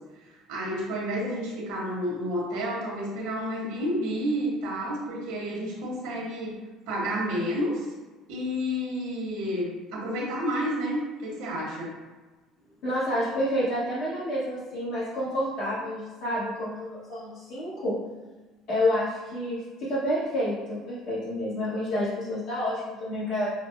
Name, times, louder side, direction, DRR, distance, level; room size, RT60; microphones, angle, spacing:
voice 1, 0.5-6.6 6.9-7.9 8.3-12.0, equal, 85° right, -3 dB, 1.0 m, -30 dB
voice 2, 12.8-18.0 18.7-23.5, left 1 dB, 55° left, -8 dB, 1.2 m, -29 dB
6.0 x 2.0 x 2.5 m, 1.3 s
cardioid pair, 145°, 0 cm